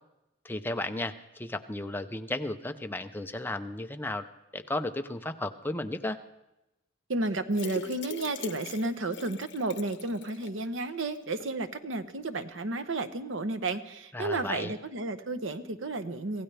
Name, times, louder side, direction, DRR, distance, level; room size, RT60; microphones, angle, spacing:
voice 1, 0.4-4.3 4.5-6.2 14.1-14.7, left 2 dB, 10° left, 7 dB, 0.6 m, -34 dB
voice 2, 7.1-16.4, right 2 dB, 85° right, 9 dB, 1.0 m, -32 dB
sound 1, 7.5-10.6 11.0-11.1 11.4-11.5, left 5 dB, 65° left, 1.0 m, -41 dB
25.0 x 16.0 x 3.4 m, 0.93 s
head